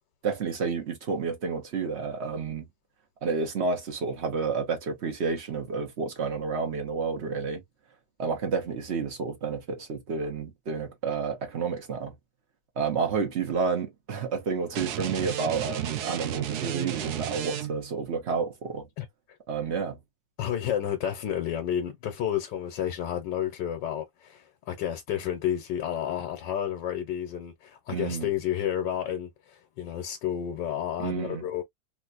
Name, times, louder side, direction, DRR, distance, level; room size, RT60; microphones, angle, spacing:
voice 1, 0.2-2.6 3.2-7.6 8.2-12.1 12.8-18.9 19.5-20.0 27.9-28.3 31.0-31.4, right 5 dB, 45° right, 1.0 m, -30 dB
sound 1, 14.7-18.0, right 11 dB, 70° right, 1.0 m, -33 dB
voice 2, 19.0-19.4 20.4-31.6, left 10 dB, 75° left, 1.4 m, -31 dB
3.4 x 2.7 x 2.4 m
omnidirectional pair, 2.0 m